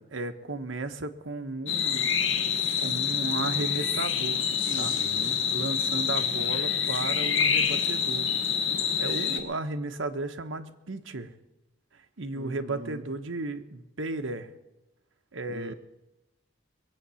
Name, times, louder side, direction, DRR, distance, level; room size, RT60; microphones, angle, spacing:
voice 1, 0.0-2.1 2.8-4.4 4.7-5.0 5.5-8.3 9.0-11.3 12.2-14.5 15.3-15.7, right 2 dB, 90° right, 8 dB, 1.1 m, -34 dB
sound 1, 1.7-9.4, left 7 dB, 80° left, 1.7 m, -27 dB
voice 2, 4.7-5.4 12.3-13.0 15.5-15.7, right 2 dB, 60° right, 7 dB, 0.8 m, -41 dB
21.5 x 8.5 x 7.0 m, 0.96 s
head